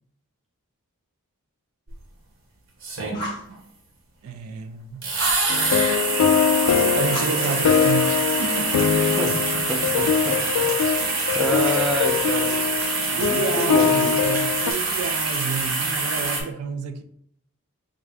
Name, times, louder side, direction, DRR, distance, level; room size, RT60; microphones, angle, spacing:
sound 1, 1.9-2.0 2.8-3.5 5.0-16.4, right 3 dB, 60° right, 0.9 m, -25 dB
Fire, 3.1-3.5 5.2-5.5 7.1-8.0, left 1 dB, 20° left, 0.8 m, -34 dB
voice 1, 4.2-5.0 6.9-8.9 13.2-17.0, right 5 dB, 80° right, 0.4 m, -30 dB
sound 2, 5.5-14.7, left 7 dB, 85° left, 0.3 m, -23 dB
voice 2, 9.7-10.9 11.3-12.6 13.1-14.1, equal, ahead, 0.4 m, -28 dB
3.4 x 2.6 x 3.3 m
head